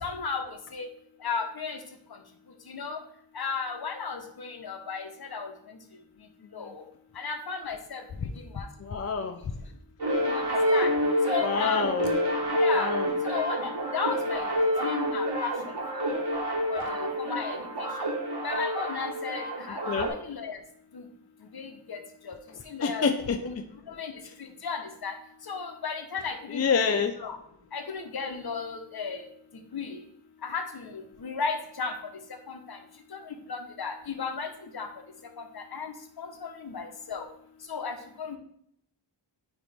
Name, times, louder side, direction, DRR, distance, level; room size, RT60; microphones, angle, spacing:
voice 1, 0.0-0.9 1.2-1.8 2.7-3.0 3.3-5.8 6.5-6.8 7.1-8.0 8.5-8.7 10.2-10.9 11.3-11.9 12.5-12.9 13.2-14.5 14.8-15.5 15.9-16.3 16.7-18.1 18.4-20.6 20.9-21.1 21.5-22.0 22.2-22.3 22.7-23.0 23.4-23.5 23.9-24.1 24.6-25.1 25.4-27.4 27.7-29.2 29.7-30.0 30.4-31.9 32.5-32.8 33.1-34.9 35.5-37.2 37.7-38.4, left 5 dB, 60° left, 5 dB, 1.0 m, -34 dB
voice 2, 8.8-9.3 11.4-12.1 12.8-13.1 19.9-20.1 22.8-23.4 26.5-27.1, left 5 dB, 35° left, 6 dB, 0.4 m, -27 dB
sound 1, 10.0-20.1, equal, 65° right, 1.3 m, -28 dB
8.9 x 3.0 x 3.4 m, 0.69 s
wide cardioid pair, 65°, 42 cm